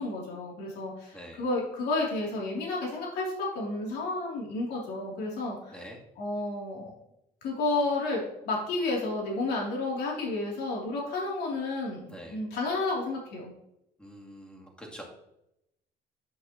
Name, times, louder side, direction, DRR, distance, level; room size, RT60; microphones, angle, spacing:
voice 1, 0.0-5.8 6.2-6.9 7.4-13.5, left 2 dB, 75° left, -3 dB, 3.0 m, -31 dB
voice 2, 12.1-12.4 14.0-15.0, equal, 5° left, -2 dB, 2.4 m, -45 dB
11.0 x 5.7 x 3.0 m, 0.82 s
cardioid pair, 110°, 17 cm